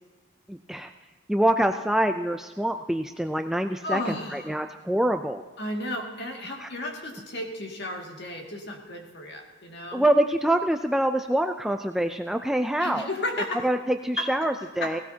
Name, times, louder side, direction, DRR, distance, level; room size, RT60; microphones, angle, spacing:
voice 1, 0.5-0.9 1.3-4.0 4.3-5.4 6.6-6.7 9.9-13.1 13.6-15.0, right 1 dB, ahead, 5 dB, 0.3 m, -25 dB
voice 2, 3.8-4.5 5.6-10.0 12.8-13.7 14.2-14.3 14.6-15.0, left 1 dB, 55° left, 1 dB, 2.1 m, -33 dB
17.5 x 17.0 x 2.8 m, 1.4 s
head